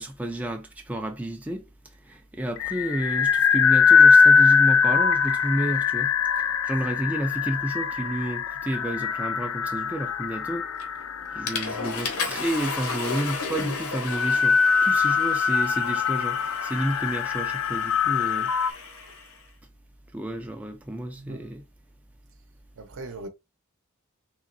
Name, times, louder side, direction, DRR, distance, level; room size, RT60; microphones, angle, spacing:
voice 1, 0.0-1.6 2.0-6.1 6.6-10.7 11.3-18.5 20.1-21.6, right 1 dB, 5° right, 0.4 m, -30 dB
sound 1, 2.6-18.7, left 6 dB, 65° left, 0.4 m, -22 dB
Water / Toilet flush, 10.8-11.1 11.5-19.3, left 4 dB, 80° left, 1.0 m, -34 dB
voice 2, 21.1-21.5 22.7-23.3, right 2 dB, 60° right, 0.7 m, -39 dB
3.7 x 3.0 x 2.5 m
head